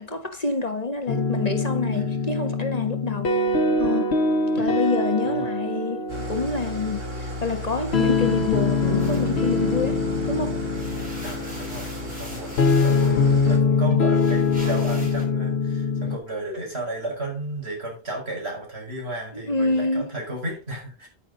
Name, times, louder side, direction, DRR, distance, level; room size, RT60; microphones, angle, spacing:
voice 1, 0.0-3.3 3.8-4.1 4.5-10.0 10.3-10.6 19.3-20.1, left 3 dB, 40° left, 1.5 m, -27 dB
sound 1, 1.1-16.2, left 3 dB, 85° left, 1.3 m, -23 dB
voice 2, 1.9-2.3 4.6-5.6 11.2-21.1, right 1 dB, 85° right, 5.6 m, -34 dB
Engine starting / Idling, 6.1-13.6, left 1 dB, 65° right, 2.8 m, -35 dB
sound 2, 9.0-10.2 10.6-15.3, equal, 10° right, 5.0 m, -43 dB
9.8 x 9.4 x 3.9 m
omnidirectional pair, 1.1 m